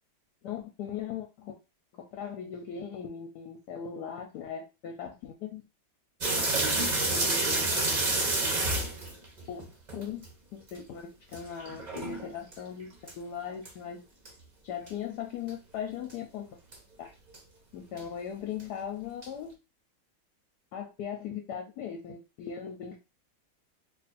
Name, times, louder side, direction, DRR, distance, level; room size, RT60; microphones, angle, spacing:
voice 1, 0.4-1.5 1.9-5.6 7.1-7.5 9.5-10.3 10.5-14.0 14.6-16.5 17.0-17.1 17.7-19.5 20.7-23.0, left 8 dB, 70° left, 3 dB, 1.1 m, -39 dB
sound 1, 6.2-10.3 10.7-10.8 11.3-12.5 13.1-13.2 13.6-13.7 14.3-14.4 14.9-15.0 15.5-15.6 16.1-16.2 16.7-16.8 17.3-17.4 18.0-18.1 18.6-18.7 19.2-19.3, right 2 dB, 40° right, 0.6 m, -29 dB
2.9 x 2.5 x 4.1 m, 0.28 s
omnidirectional pair, 2.0 m